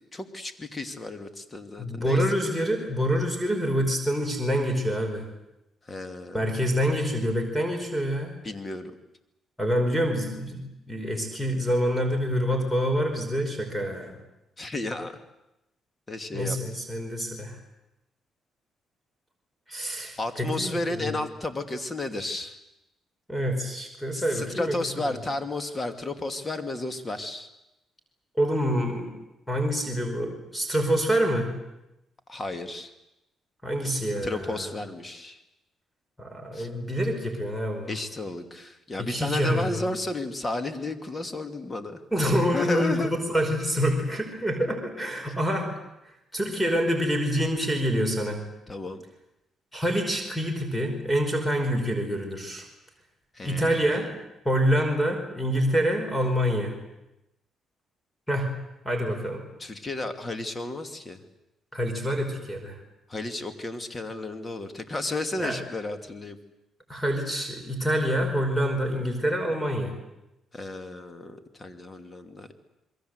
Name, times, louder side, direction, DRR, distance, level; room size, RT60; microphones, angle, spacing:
voice 1, 0.1-2.2 5.9-6.5 8.4-8.9 14.6-15.2 16.1-16.6 20.2-22.6 24.1-27.5 32.3-32.9 34.2-35.4 36.5-36.7 37.9-42.0 42.5-43.1 48.7-49.0 53.3-54.1 59.6-61.2 63.1-66.4 70.5-72.6, left 2 dB, 25° left, 8 dB, 2.7 m, -33 dB
voice 2, 1.8-5.2 6.3-8.3 9.6-10.6 10.9-14.1 16.3-17.6 19.7-21.1 23.3-24.8 28.4-29.1 29.5-31.5 33.6-34.6 36.2-37.9 39.0-39.8 42.1-45.7 46.3-48.4 49.7-52.6 53.4-54.1 54.5-56.8 58.3-58.5 58.9-59.4 61.7-62.7 65.4-65.6 66.9-69.9, equal, 5° left, 5 dB, 5.3 m, -26 dB
28.0 x 22.0 x 8.2 m, 0.91 s
cardioid pair, 90°, 0 cm